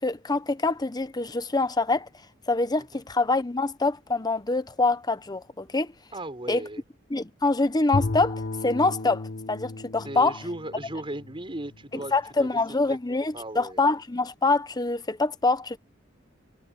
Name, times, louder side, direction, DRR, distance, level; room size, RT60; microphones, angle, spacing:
voice 1, 0.0-2.1 2.5-5.9 6.5-6.6 7.1-10.4 11.9-15.8, left 3 dB, 20° left, 0.9 m, -25 dB
voice 2, 6.1-6.8 10.0-12.5 12.9-13.0 13.3-13.8, right 1 dB, 25° right, 5.3 m, -36 dB
Bowed string instrument, 7.9-12.2, left 2 dB, 55° left, 0.9 m, -34 dB
head